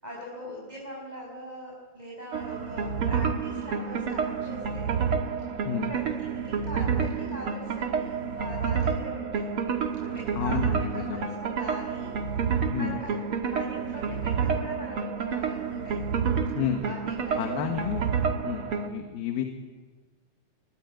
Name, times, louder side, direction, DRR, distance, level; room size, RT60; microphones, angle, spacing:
voice 1, 0.0-5.0 5.4-5.6 5.9-9.5 10.0-12.4 12.8-16.0 16.8-17.7 18.7-18.9, equal, 10° right, -3 dB, 5.8 m, -41 dB
sound 1, 2.3-18.9, right 6 dB, 45° right, 2.0 m, -29 dB
voice 2, 10.3-11.3 12.7-13.0 16.5-16.8 17.4-18.0 18.4-19.5, left 9 dB, 80° left, 4 dB, 3.4 m, -31 dB
26.5 x 23.5 x 9.4 m, 1.4 s
omnidirectional pair, 4.2 m